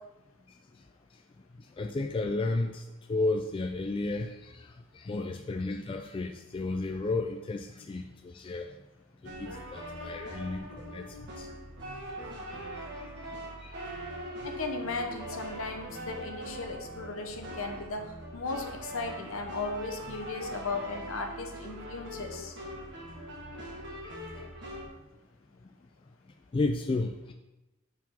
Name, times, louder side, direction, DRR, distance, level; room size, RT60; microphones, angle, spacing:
voice 1, 1.8-2.8 3.1-8.7 9.2-11.5 12.7-13.1 13.6-13.7 14.3-14.5 24.0-24.5 26.5-27.3, left 2 dB, 25° left, 3 dB, 0.3 m, -33 dB
sound 1, 9.2-24.9, right 1 dB, 55° right, 1.5 m, -42 dB
voice 2, 14.4-18.0 18.3-22.5, left 3 dB, 65° left, 4 dB, 1.0 m, -36 dB
5.6 x 4.9 x 5.9 m, 1.0 s
head